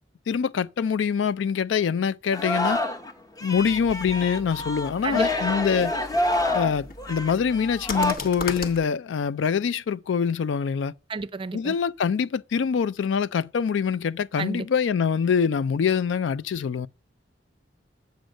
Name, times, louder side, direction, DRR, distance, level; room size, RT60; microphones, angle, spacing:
voice 1, 0.3-2.8 3.4-5.9 6.5-10.9 11.5-16.9, left 6 dB, 90° left, 0.4 m, -24 dB
Singing, 2.3-3.1 3.4-8.1, left 1 dB, 20° left, 0.8 m, -27 dB
sound 1, 3.5-8.9, left 3 dB, 55° left, 1.0 m, -38 dB
voice 2, 11.1-11.7 14.4-14.7, right 4 dB, 30° right, 0.4 m, -30 dB
7.8 x 5.1 x 6.3 m
head